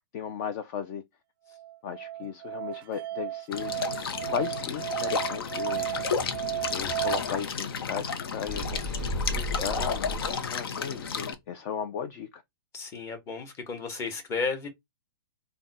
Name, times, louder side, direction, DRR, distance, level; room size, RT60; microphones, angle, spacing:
voice 1, 0.1-1.0 1.8-3.7 4.2-5.9 6.7-8.8 9.3-12.4, left 7 dB, 40° left, 0.5 m, -35 dB
Musical instrument, 1.5-7.2, right 13 dB, 65° right, 0.4 m, -34 dB
sound 1, 3.5-11.3, left 6 dB, 65° left, 0.8 m, -32 dB
sound 2, 5.7-7.9 8.4-10.5, equal, 5° left, 0.7 m, -36 dB
voice 2, 12.7-14.7, left 4 dB, 20° left, 1.0 m, -33 dB
3.4 x 2.2 x 4.0 m
hypercardioid pair, 140°, 13 cm